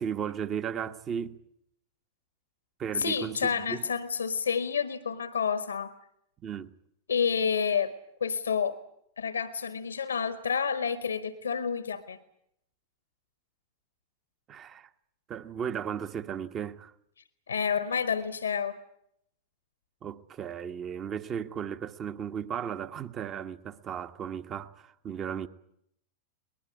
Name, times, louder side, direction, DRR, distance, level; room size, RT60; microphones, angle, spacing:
voice 1, 0.0-1.4 2.8-3.8 6.4-6.7 14.5-14.9 15.3-16.9 20.0-25.5, right 8 dB, 30° right, 1.3 m, -35 dB
voice 2, 3.0-5.9 7.1-7.9 8.2-8.8 9.2-12.2 17.5-18.8, left 6 dB, 70° left, 1.4 m, -29 dB
22.0 x 20.5 x 9.6 m
figure-of-eight pair, 90°, 0 cm